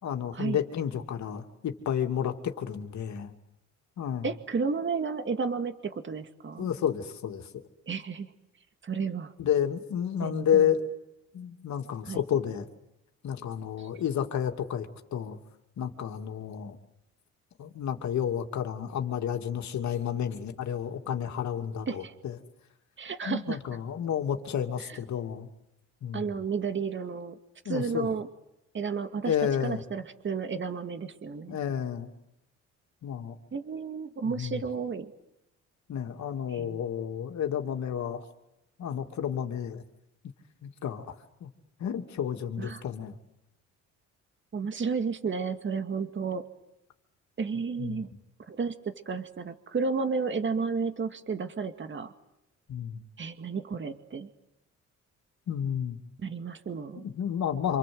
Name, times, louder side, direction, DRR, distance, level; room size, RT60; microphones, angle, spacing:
voice 1, 0.0-3.3 4.0-4.3 6.6-7.5 9.4-10.9 11.3-12.7 13.2-15.4 15.8-16.8 17.6-22.4 23.2-25.5 26.0-26.4 27.6-28.1 29.2-29.8 31.5-32.1 33.0-33.4 34.2-34.6 35.9-38.2 38.8-39.8 40.6-41.1 41.4-41.5 41.8-43.2 47.8-48.0 52.7-53.1 55.5-56.0 57.0-57.8, left 9 dB, 65° left, 5 dB, 2.7 m, -31 dB
voice 2, 4.2-6.7 7.9-8.3 8.8-9.3 10.2-10.7 12.1-12.2 13.8-13.9 21.9-22.1 23.0-23.6 24.9-25.0 26.1-27.4 27.7-28.3 28.7-29.3 29.6-31.6 33.5-35.1 36.5-36.8 42.6-42.8 44.5-46.4 47.4-48.1 48.5-52.1 53.2-54.3 56.2-57.1, right 5 dB, 40° right, 8 dB, 2.2 m, -32 dB
27.5 x 26.5 x 7.9 m, 0.89 s
cardioid pair, 90°, 30 cm